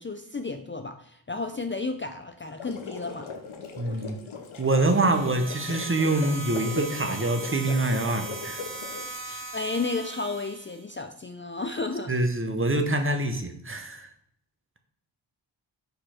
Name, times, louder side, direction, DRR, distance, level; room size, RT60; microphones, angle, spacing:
voice 1, 0.0-3.3 9.1-12.1, left 3 dB, 25° left, 6 dB, 0.4 m, -33 dB
sound 1, 2.4-9.2, left 5 dB, 90° left, 0.9 m, -39 dB
voice 2, 3.8-4.2 4.6-8.6 12.1-14.1, right 2 dB, 25° right, 6 dB, 0.8 m, -25 dB
sound 2, 4.7-10.8, right 2 dB, 70° right, 1.3 m, -39 dB
5.0 x 4.4 x 4.3 m, 0.70 s
cardioid pair, 45°, 46 cm